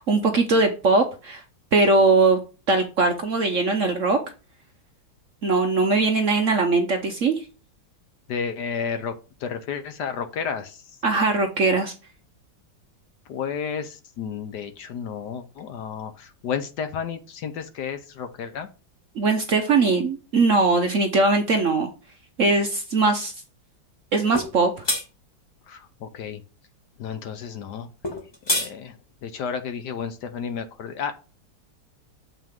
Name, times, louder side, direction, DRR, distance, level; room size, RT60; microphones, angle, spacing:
voice 1, 0.0-1.4 1.7-2.4 2.7-4.2 5.4-7.4 11.0-11.9 19.2-21.9 22.4-23.3 24.1-24.8, right 3 dB, 55° right, 5 dB, 0.9 m, -20 dB
voice 2, 8.3-9.1 9.4-10.8 13.3-18.7 25.7-26.4 27.0-27.9 28.5-31.1, left 7 dB, 65° left, 9 dB, 1.3 m, -32 dB
sound 1, 24.3-24.5 24.8-25.0 28.0-28.7, left 1 dB, 15° left, 1.0 m, -25 dB
7.4 x 5.6 x 3.6 m, 0.33 s
omnidirectional pair, 2.1 m